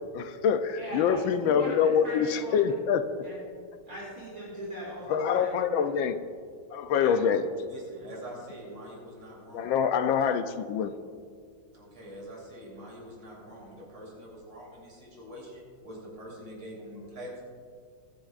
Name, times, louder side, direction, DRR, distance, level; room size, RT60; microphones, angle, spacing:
voice 1, 0.1-3.2 5.1-6.2 6.7-7.5 9.5-10.9, left 7 dB, 75° left, 10 dB, 1.4 m, -25 dB
voice 2, 0.7-2.7 3.2-3.4 3.8-5.6 6.9-7.1, right 1 dB, 45° right, -7 dB, 3.1 m, -39 dB
voice 3, 7.7-9.7 10.0-10.3 11.7-17.4, equal, 90° right, -4 dB, 4.5 m, -44 dB
21.5 x 10.5 x 2.5 m, 2.1 s
omnidirectional pair, 2.2 m